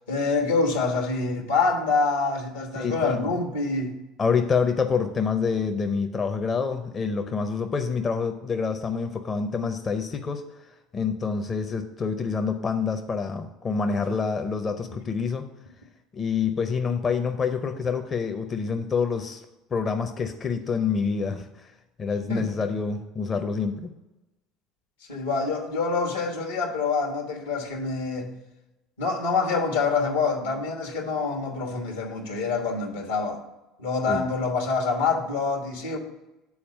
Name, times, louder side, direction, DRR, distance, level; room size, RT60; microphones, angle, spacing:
voice 1, 0.1-4.0 14.1-14.2 22.3-22.5 25.1-28.4 29.0-33.4 33.8-36.0, left 4 dB, 80° left, 1.2 m, -26 dB
voice 2, 2.8-3.3 4.2-10.4 10.9-15.4 16.1-19.4 19.7-21.7 22.0-23.9 34.1-34.2, left 5 dB, 35° left, 0.6 m, -27 dB
7.1 x 4.2 x 6.3 m
hypercardioid pair, 65°, 0 cm